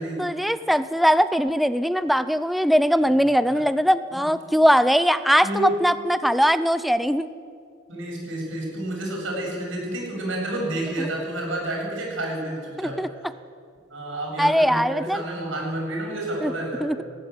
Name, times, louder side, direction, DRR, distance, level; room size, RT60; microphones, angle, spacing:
voice 1, 0.2-7.3 11.0-11.1 12.8-13.1 14.4-15.2 16.4-16.5 16.8-17.0, equal, ahead, 13 dB, 0.6 m, -21 dB
voice 2, 5.4-5.7 7.9-13.0 13.9-16.9, right 1 dB, 70° right, -1 dB, 7.5 m, -30 dB
19.0 x 16.0 x 9.6 m, 2.1 s
head